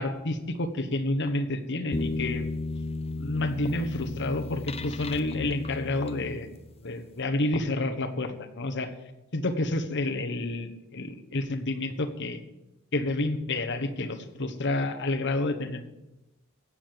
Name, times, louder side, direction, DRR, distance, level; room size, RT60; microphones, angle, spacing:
voice 1, 0.0-2.5 3.2-6.5 6.8-8.9 9.3-12.4 12.9-15.8, left 2 dB, 60° left, 6 dB, 1.3 m, -29 dB
sound 1, 1.9-6.8, left 2 dB, 30° left, 0.8 m, -34 dB
16.0 x 7.6 x 6.9 m, 0.97 s
head